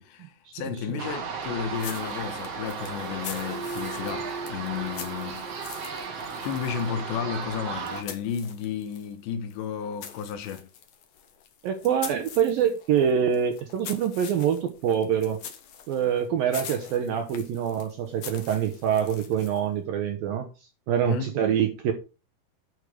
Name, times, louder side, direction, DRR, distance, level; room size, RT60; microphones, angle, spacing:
voice 1, 0.0-5.6 6.4-10.7 21.1-21.4, left 7 dB, 75° left, 3.5 m, -33 dB
sound 1, 1.0-8.0, right 5 dB, 50° right, 2.1 m, -35 dB
sound 2, 1.8-9.1 9.5-19.7, left 8 dB, 60° left, 1.9 m, -44 dB
voice 2, 11.6-15.4 15.9-20.5 20.9-21.9, right 8 dB, 70° right, 2.3 m, -25 dB
12.0 x 6.4 x 5.1 m
omnidirectional pair, 5.2 m